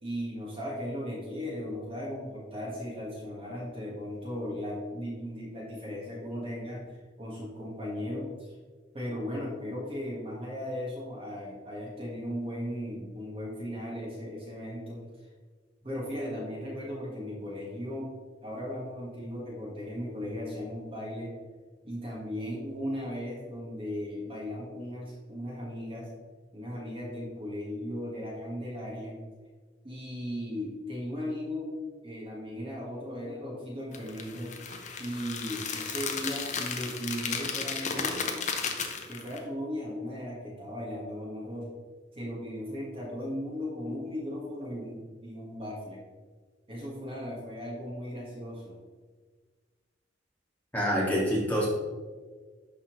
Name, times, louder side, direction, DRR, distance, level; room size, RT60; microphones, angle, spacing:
voice 1, 0.0-8.5 8.9-15.0 15.8-18.1 18.4-21.3 21.8-26.1 26.5-29.2 29.8-31.7 32.0-34.5 35.0-38.4 39.1-41.7 42.1-46.0 46.7-48.8, equal, 30° right, -4 dB, 1.6 m, -37 dB
sound 1, 33.9-39.4, left 5 dB, 40° left, 0.7 m, -34 dB
voice 2, 50.7-51.7, equal, 10° left, -6 dB, 1.9 m, -26 dB
11.5 x 4.1 x 3.1 m, 1.5 s
head